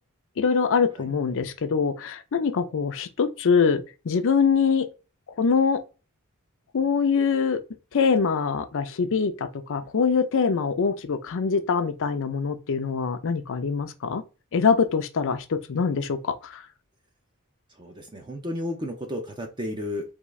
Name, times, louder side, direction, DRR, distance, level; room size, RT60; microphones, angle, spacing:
voice 1, 0.4-4.9 5.4-5.8 6.7-7.6 7.9-14.2 14.5-16.6, left 5 dB, 60° left, 0.5 m, -24 dB
voice 2, 17.8-20.0, left 1 dB, 20° right, 0.5 m, -32 dB
3.6 x 2.4 x 3.0 m
head